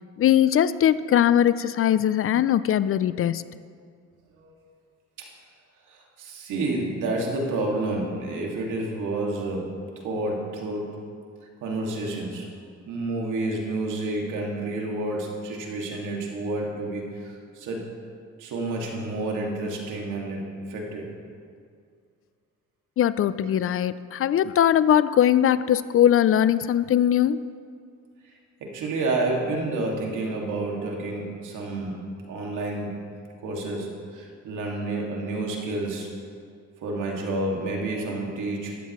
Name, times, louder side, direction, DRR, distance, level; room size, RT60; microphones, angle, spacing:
voice 1, 0.2-3.4 23.0-27.4, left 10 dB, 50° left, 16 dB, 0.4 m, -20 dB
voice 2, 5.9-9.7 10.0-10.9 11.6-12.5 12.9-17.9 18.4-20.4 20.7-21.1 28.6-32.0 32.3-33.0 33.4-36.1 36.8-38.7, right 2 dB, 85° right, -1 dB, 2.2 m, -29 dB
13.0 x 13.0 x 3.1 m, 2.2 s
cardioid pair, 90°, 30 cm